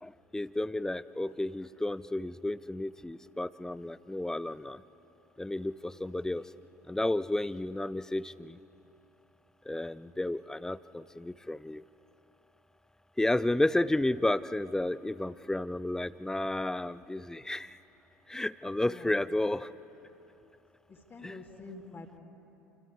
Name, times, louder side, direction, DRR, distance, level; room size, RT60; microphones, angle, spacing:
voice 1, 0.0-4.8 5.4-6.5 6.9-8.6 9.7-11.8 13.2-17.8 18.3-19.7 21.2-21.4, left 1 dB, 5° left, 17 dB, 0.5 m, -32 dB
voice 2, 20.9-22.2, left 3 dB, 25° left, -1 dB, 2.3 m, -47 dB
28.5 x 25.0 x 4.8 m, 2.8 s
figure-of-eight pair, 70°, 9 cm